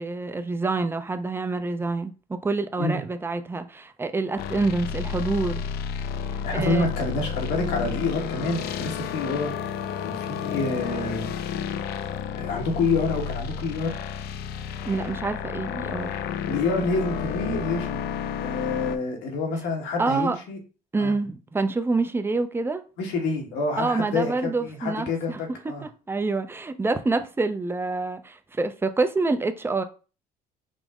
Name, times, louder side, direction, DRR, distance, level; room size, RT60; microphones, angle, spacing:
voice 1, 0.0-5.7 6.5-6.9 14.8-16.2 20.0-20.4 20.9-22.8 23.8-25.4 25.8-29.8, right 3 dB, 15° right, 0.4 m, -27 dB
sound 1, 4.4-19.0, left 7 dB, 70° left, 0.4 m, -31 dB
voice 2, 6.4-9.5 10.0-11.3 12.3-13.9 16.5-18.0 18.4-20.6 21.0-21.1 23.0-24.3 24.6-25.8, left 3 dB, 85° left, 1.3 m, -27 dB
5.2 x 2.0 x 3.6 m
cardioid pair, 110°, 17 cm